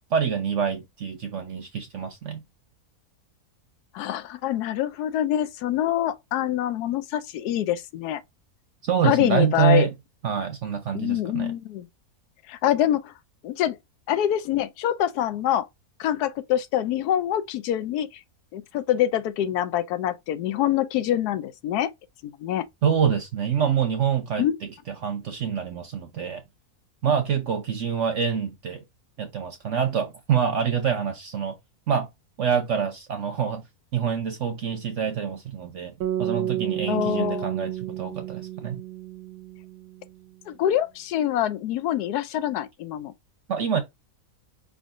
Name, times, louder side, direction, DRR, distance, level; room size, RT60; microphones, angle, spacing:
voice 1, 0.1-2.4 8.8-9.9 10.2-11.5 22.8-24.5 25.0-26.4 27.0-28.8 29.2-31.6 31.9-32.1 32.4-33.6 33.9-38.8 43.5-43.8, right 7 dB, 60° right, 0.9 m, -26 dB
voice 2, 3.9-8.2 9.0-9.9 10.9-11.9 12.5-13.1 13.4-13.8 14.1-15.7 16.0-18.1 18.5-21.9 22.2-22.6 24.4-24.6 36.9-37.5 40.5-43.1, left 11 dB, 90° left, 1.1 m, -25 dB
sound 1, 36.0-40.2, right 11 dB, 85° right, 1.1 m, -31 dB
5.1 x 3.6 x 2.5 m
omnidirectional pair, 1.6 m